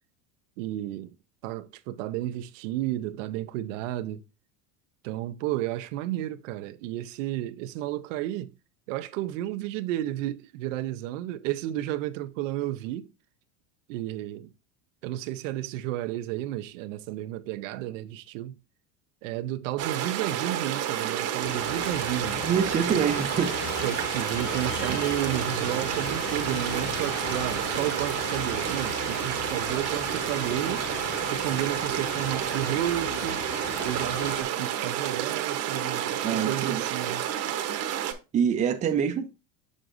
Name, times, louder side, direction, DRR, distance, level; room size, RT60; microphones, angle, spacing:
voice 1, 0.6-1.1 1.4-4.2 5.0-8.5 8.9-13.1 13.9-14.5 15.0-18.5 19.2-22.4 23.8-30.9 31.3-33.4 33.8-37.2, right 14 dB, 90° right, 0.7 m, -32 dB
sound 1, 19.8-38.1, right 10 dB, 45° right, 1.0 m, -30 dB
sound 2, 21.4-34.4, left 9 dB, 30° left, 0.4 m, -38 dB
voice 2, 22.4-23.6 24.9-25.0 36.2-36.8 38.3-39.4, right 7 dB, 20° right, 0.6 m, -25 dB
6.4 x 6.1 x 2.6 m
cardioid pair, 155°, 37 cm